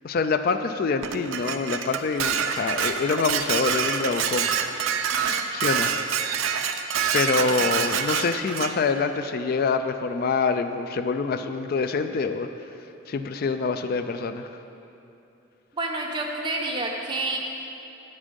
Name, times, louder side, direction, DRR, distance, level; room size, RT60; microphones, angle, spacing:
voice 1, 0.0-4.5 5.5-5.9 7.1-12.5 13.1-14.5, left 4 dB, 45° left, 8 dB, 0.3 m, -26 dB
Dishes pots and pans, 1.0-8.7, right 7 dB, 85° right, 0.5 m, -26 dB
voice 2, 15.7-17.4, right 2 dB, 25° right, -1 dB, 1.0 m, -29 dB
8.7 x 8.1 x 5.3 m, 2.8 s
head